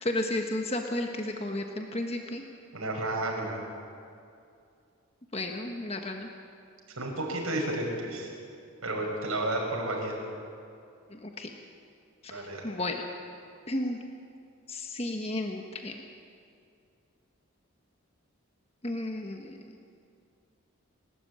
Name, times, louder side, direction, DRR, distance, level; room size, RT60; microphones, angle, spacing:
voice 1, 0.0-2.4 5.3-6.3 11.1-11.5 12.2-13.0 13.7-14.0 14.7-15.9 18.8-19.7, left 1 dB, 30° left, 3 dB, 1.3 m, -33 dB
voice 2, 2.7-3.6 7.0-8.3 8.8-10.1 12.3-12.6, right 1 dB, 80° right, -1 dB, 5.9 m, -31 dB
28.5 x 13.0 x 8.7 m, 2.4 s
head